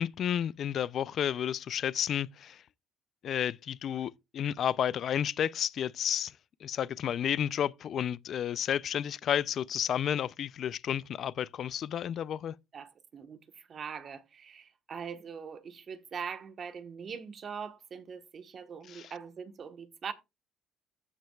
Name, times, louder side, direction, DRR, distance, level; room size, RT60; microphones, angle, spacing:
voice 1, 0.0-2.6 3.2-6.3 6.6-12.5 18.9-19.1, left 9 dB, 55° left, 0.4 m, -31 dB
voice 2, 12.7-20.1, right 6 dB, 45° right, 1.2 m, -42 dB
14.0 x 6.2 x 2.3 m
cardioid pair, 100°, 0 cm